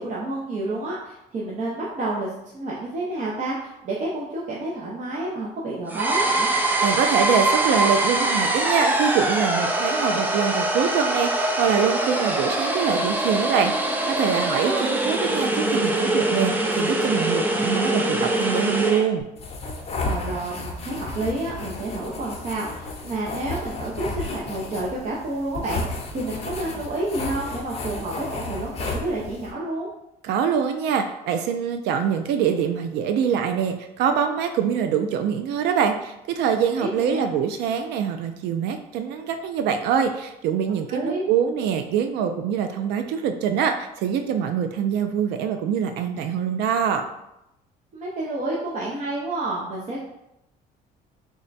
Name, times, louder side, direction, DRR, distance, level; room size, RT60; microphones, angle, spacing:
voice 1, 0.0-6.5 14.6-14.9 20.0-29.9 36.8-37.2 40.9-41.3 47.9-50.0, right 2 dB, 45° right, -5 dB, 0.7 m, -29 dB
sound 1, 5.9-19.1, right 1 dB, 10° right, 0.4 m, -23 dB
voice 2, 6.8-19.3 30.2-47.0, right 7 dB, 85° right, 6 dB, 0.4 m, -24 dB
sound 2, 19.4-29.5, left 2 dB, 40° left, 0.7 m, -33 dB
3.5 x 2.2 x 4.0 m, 0.86 s
cardioid pair, 110°, 17 cm